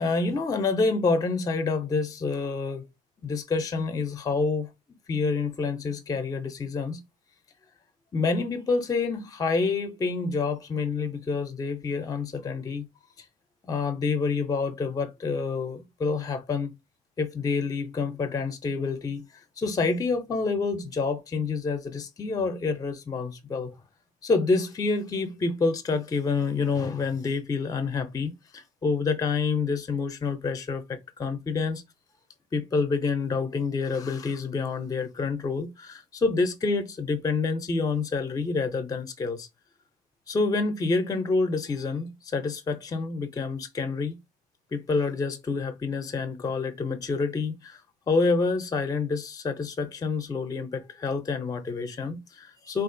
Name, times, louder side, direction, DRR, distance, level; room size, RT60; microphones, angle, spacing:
voice 1, 0.0-2.9 3.2-4.7 5.1-7.0 8.1-12.9 13.6-16.7 17.2-19.2 19.6-23.7 24.2-31.8 32.5-39.5 40.3-44.2 44.7-47.8 48.1-52.8, left 4 dB, 20° left, 0.4 m, -28 dB
3.5 x 2.3 x 2.5 m
cardioid pair, 110°, 17 cm